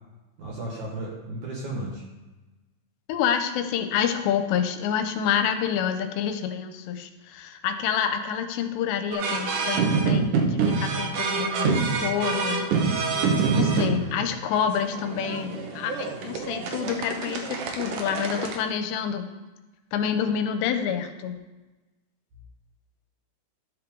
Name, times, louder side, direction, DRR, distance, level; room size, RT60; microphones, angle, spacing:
voice 1, 0.4-2.0, right 1 dB, 60° right, -2 dB, 2.2 m, -34 dB
voice 2, 3.1-12.7 13.5-19.3 19.9-21.4, left 8 dB, 90° left, 7 dB, 2.8 m, -28 dB
sound 1, 9.1-18.6, right 5 dB, 85° right, 1.8 m, -26 dB
13.0 x 5.9 x 3.8 m, 1.2 s
omnidirectional pair, 5.0 m